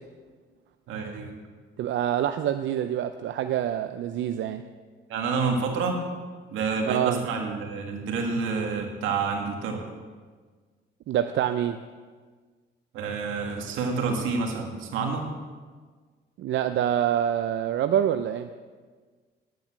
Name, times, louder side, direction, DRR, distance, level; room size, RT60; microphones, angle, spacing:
voice 1, 0.9-1.3 5.1-6.0 6.5-9.8 12.9-15.3, right 4 dB, 90° right, 2 dB, 2.2 m, -28 dB
voice 2, 1.8-4.6 6.8-7.3 11.1-11.8 16.4-18.5, right 10 dB, 70° right, 9 dB, 0.6 m, -26 dB
10.0 x 9.1 x 7.4 m, 1.5 s
cardioid pair, 90°, 20 cm